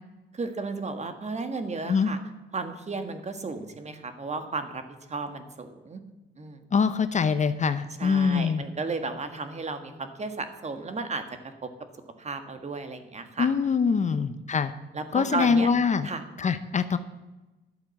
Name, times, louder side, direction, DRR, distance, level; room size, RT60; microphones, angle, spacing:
voice 1, 0.3-2.2 2.5-4.8 5.1-6.0 6.4-6.6 8.0-11.2 11.6-11.7 12.2-13.5 14.1-14.2 14.9-15.7 16.0-16.2, right 3 dB, 35° right, 8 dB, 1.6 m, -34 dB
voice 2, 6.7-8.6 13.4-14.7 15.1-16.1 16.4-17.0, left 5 dB, 35° left, 12 dB, 0.7 m, -24 dB
11.5 x 8.3 x 7.1 m, 1.1 s
cardioid pair, 90°, 20 cm